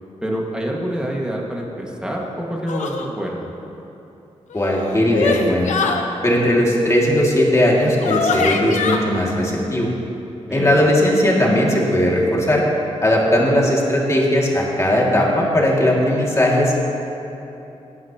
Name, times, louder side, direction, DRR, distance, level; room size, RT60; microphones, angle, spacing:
voice 1, 0.2-3.4 10.4-10.8, right 1 dB, 5° right, -2 dB, 1.9 m, -26 dB
sound 1, 2.7-3.1 4.5-6.0 7.6-7.7 8.0-9.0, left 5 dB, 90° left, 0.8 m, -23 dB
voice 2, 4.5-5.7 6.2-9.9 10.5-12.6 13.0-16.7, left 1 dB, 25° left, -3 dB, 2.3 m, -18 dB
18.5 x 9.4 x 3.0 m, 3.0 s
cardioid pair, 80°, 12 cm